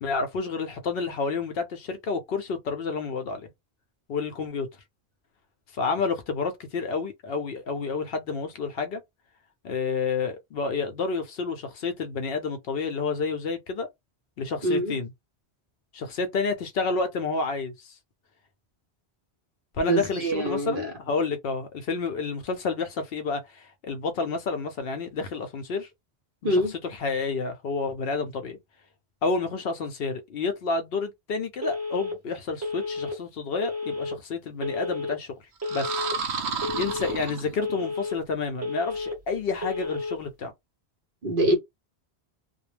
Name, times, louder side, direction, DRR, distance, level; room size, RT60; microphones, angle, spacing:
voice 1, 0.0-3.5 4.1-4.7 5.7-9.0 9.6-13.9 14.4-15.1 15.9-18.0 19.8-25.9 26.4-26.6 27.0-28.6 29.2-35.3 35.7-36.0 36.8-40.5, left 4 dB, 65° left, 0.8 m, -29 dB
voice 2, 14.6-15.0 19.8-20.9 26.4-26.7 41.2-41.5, right 1 dB, 55° right, 0.9 m, -24 dB
Telephone, 31.6-32.1 32.6-33.1 33.6-34.1 34.6-35.1 35.6-36.1 36.6-37.1 37.6-38.1 38.6-39.1 39.6-40.1, left 3 dB, 25° right, 0.4 m, -31 dB
sound 1, 35.6-37.9, right 5 dB, 85° right, 0.9 m, -32 dB
2.3 x 2.0 x 3.2 m
omnidirectional pair, 1.1 m